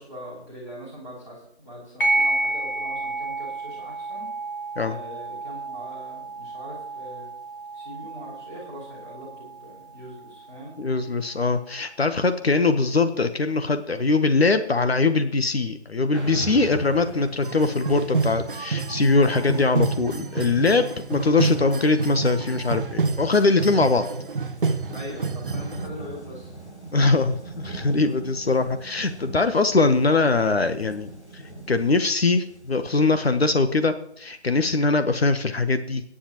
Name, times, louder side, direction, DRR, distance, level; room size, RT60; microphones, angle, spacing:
voice 1, 0.0-4.3 4.8-7.3 7.7-10.7 24.1-24.2 24.9-26.6, equal, 10° left, -6 dB, 4.1 m, -41 dB
sound 1, 2.0-11.0, right 2 dB, 50° left, 3.3 m, -31 dB
voice 2, 10.8-20.8 21.1-24.1 26.9-31.4 31.7-36.0, left 3 dB, 65° left, 9 dB, 1.1 m, -22 dB
sound 2, 16.1-33.9, right 2 dB, 85° left, 6.4 m, -42 dB
sound 3, 17.4-25.9, right 4 dB, 50° right, 0.8 m, -28 dB
20.0 x 10.0 x 3.0 m, 0.68 s
figure-of-eight pair, 160°, 33 cm